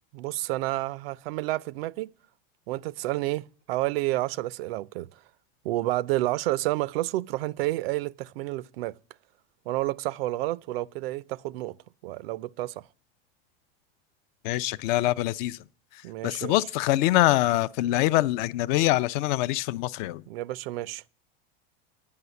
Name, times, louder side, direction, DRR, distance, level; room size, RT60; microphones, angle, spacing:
voice 1, 0.1-2.1 2.7-5.1 5.6-8.9 9.7-11.7 12.0-12.7 16.0-16.6 20.3-21.0, right 17 dB, 80° right, 0.5 m, -30 dB
voice 2, 14.4-15.6 15.9-20.2, left 16 dB, 55° left, 0.5 m, -24 dB
9.6 x 5.7 x 8.0 m
supercardioid pair, 140°, 29 cm